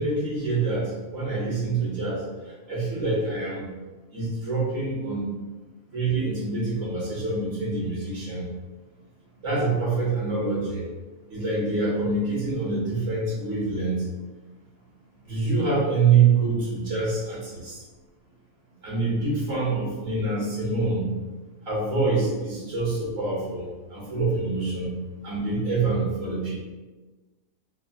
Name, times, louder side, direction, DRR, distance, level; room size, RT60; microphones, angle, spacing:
voice 1, 0.0-2.2 2.7-3.7 4.1-5.3 5.9-8.5 9.4-10.8 11.3-14.0 15.2-17.8 18.8-21.1 21.7-24.9 25.2-26.5, right 4 dB, 60° right, -7 dB, 1.8 m, -25 dB
5.5 x 2.3 x 2.3 m, 1.2 s
omnidirectional pair, 1.6 m